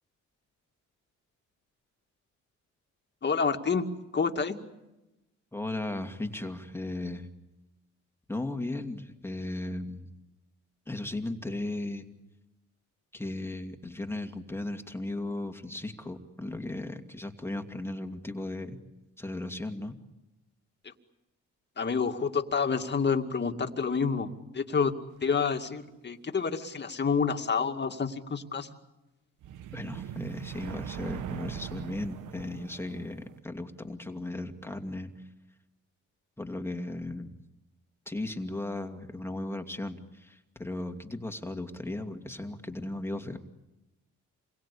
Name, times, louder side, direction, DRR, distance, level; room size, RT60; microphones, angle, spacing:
voice 1, 3.2-3.8 4.1-4.5 20.8-20.9 21.8-24.9 25.2-28.7, left 5 dB, 35° left, 5 dB, 2.3 m, -28 dB
voice 2, 5.5-7.3 8.3-10.1 10.9-12.0 13.1-18.8 19.2-20.0 29.7-35.2 36.4-37.4 38.1-43.4, left 2 dB, 10° left, 5 dB, 2.4 m, -36 dB
sound 1, 29.4-33.4, right 10 dB, 80° right, 1.2 m, -40 dB
28.0 x 23.0 x 8.6 m, 0.99 s
cardioid pair, 90°, 30 cm